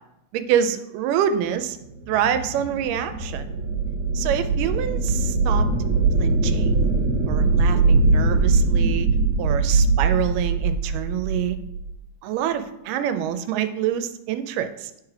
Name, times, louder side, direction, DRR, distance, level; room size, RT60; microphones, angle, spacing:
voice 1, 0.3-1.8 2.1-3.5 4.1-5.7 6.2-6.9 7.3-9.1 9.4-11.6 12.2-14.9, right 9 dB, 85° right, 10 dB, 2.1 m, -26 dB
Something scary, 1.7-11.9, right 3 dB, 65° right, 2.0 m, -21 dB
8.6 x 3.2 x 4.7 m, 0.85 s
omnidirectional pair, 3.8 m